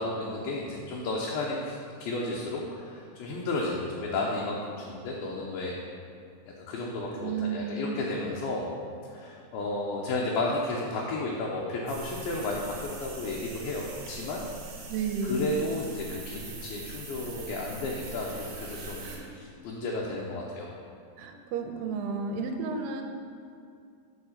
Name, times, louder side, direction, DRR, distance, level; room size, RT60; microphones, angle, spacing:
voice 1, 0.0-5.8 6.7-8.7 9.0-14.4 15.2-20.7, left 2 dB, 75° left, -3 dB, 2.4 m, -33 dB
voice 2, 7.2-7.9 14.9-15.5 19.0-19.3 21.2-23.0, right 4 dB, 85° right, 4 dB, 2.7 m, -32 dB
sound 1, 11.9-19.2, right 3 dB, 65° right, 2.4 m, -42 dB
7.1 x 4.7 x 6.5 m, 2.4 s
omnidirectional pair, 4.7 m